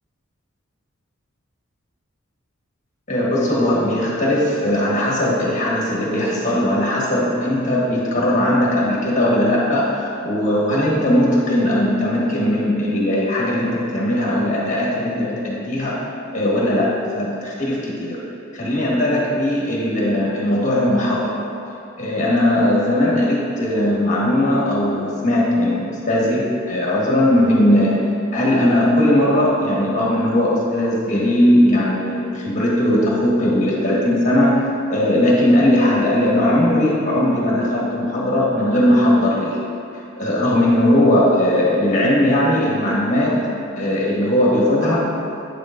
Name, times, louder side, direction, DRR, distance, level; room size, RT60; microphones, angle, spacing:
voice 1, 3.1-16.1 16.3-18.2 18.5-21.4 22.0-28.1 28.3-34.6 34.9-39.6 40.2-43.5 43.8-45.1, left 1 dB, 35° left, -5 dB, 1.4 m, -18 dB
8.9 x 6.7 x 2.5 m, 2.6 s
head